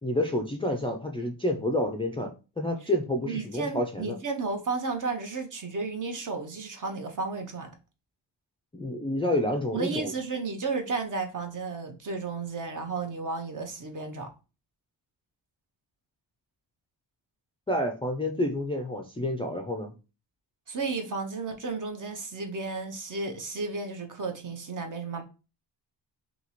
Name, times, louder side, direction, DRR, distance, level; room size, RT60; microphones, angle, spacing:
voice 1, 0.0-2.3 2.6-4.2 8.7-10.1 17.7-19.9, left 1 dB, 15° left, 0.3 m, -29 dB
voice 2, 3.3-7.7 9.7-14.3 20.7-25.2, right 4 dB, 40° right, 0.8 m, -33 dB
2.9 x 2.8 x 4.1 m
wide cardioid pair, 155°, 46 cm